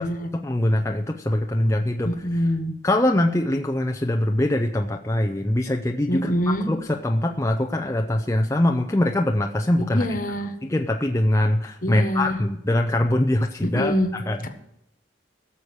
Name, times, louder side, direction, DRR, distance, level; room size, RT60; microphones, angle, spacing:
voice 1, 0.3-2.5 2.8-10.1 10.6-14.5, left 1 dB, 15° left, 3 dB, 0.6 m, -23 dB
voice 2, 2.0-2.7 6.1-6.7 9.9-10.5 11.8-12.4 13.6-14.1 14.4-14.5, equal, 45° left, 7 dB, 1.4 m, -24 dB
17.0 x 7.0 x 6.5 m, 0.81 s
head